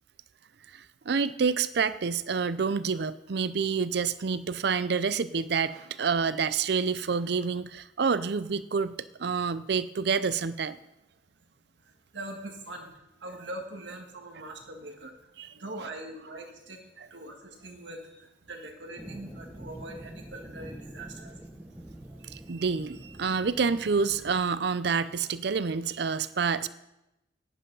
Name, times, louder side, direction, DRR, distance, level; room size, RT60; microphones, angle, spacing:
voice 1, 0.7-10.8 15.4-15.5 22.3-26.7, right 5 dB, 60° right, 15 dB, 0.5 m, -28 dB
voice 2, 11.8-12.9 13.2-21.4 22.1-22.2, right 1 dB, 75° right, 2 dB, 1.8 m, -42 dB
sound 1, 19.0-24.4, right 1 dB, 10° right, 1.0 m, -45 dB
11.0 x 10.0 x 5.5 m, 0.93 s
head